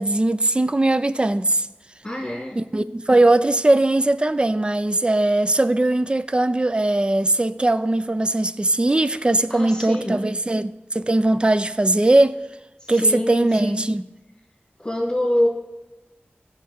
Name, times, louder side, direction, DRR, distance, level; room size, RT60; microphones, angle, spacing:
voice 1, 0.0-1.7 2.6-12.4 12.9-14.1, right 2 dB, 25° right, 0.4 m, -20 dB
voice 2, 2.0-2.6 9.5-10.2 12.8-13.8 14.8-15.5, left 1 dB, 20° left, 3.6 m, -25 dB
17.0 x 6.6 x 3.6 m
wide cardioid pair, 70°, 4 cm